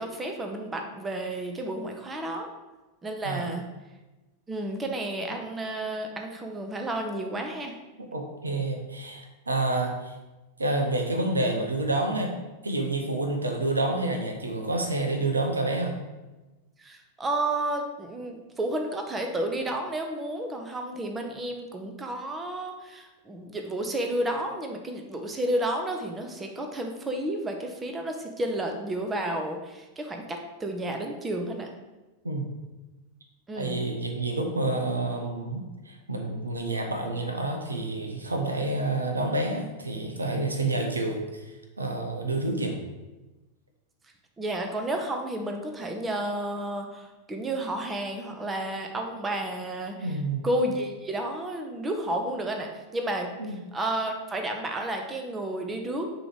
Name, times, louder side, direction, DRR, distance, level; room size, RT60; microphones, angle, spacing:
voice 1, 0.0-2.5 3.0-3.6 4.5-7.7 16.8-31.7 33.5-33.8 44.4-50.2 50.4-56.1, right 1 dB, 15° right, 3 dB, 0.8 m, -31 dB
voice 2, 3.2-3.5 8.1-10.1 10.6-12.3 12.6-16.0 32.2-32.5 33.5-42.8 50.0-50.4 53.4-53.6, right 2 dB, 80° right, 4 dB, 0.8 m, -28 dB
6.2 x 3.1 x 5.0 m, 1.1 s
figure-of-eight pair, 90°, 0 cm